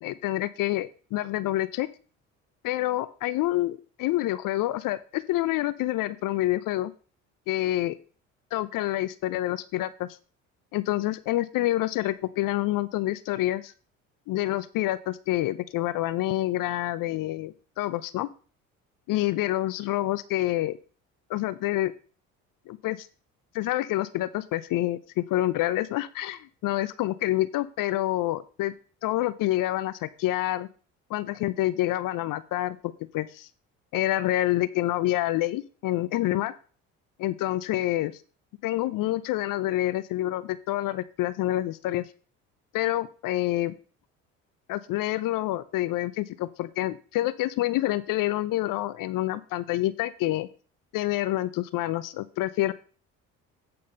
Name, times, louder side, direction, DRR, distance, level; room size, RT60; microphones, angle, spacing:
voice 1, 0.0-1.9 2.6-6.9 7.5-7.9 8.5-10.1 10.7-13.7 14.3-18.3 19.1-20.8 21.3-21.9 22.7-23.1 23.5-28.7 29.0-30.7 31.1-33.5 33.9-36.5 37.2-38.1 38.6-42.0 42.7-43.7 44.7-50.5 50.9-52.7, left 15 dB, 55° left, 15 dB, 0.7 m, -27 dB
8.7 x 5.4 x 5.3 m, 0.39 s
hypercardioid pair, 55°, 40 cm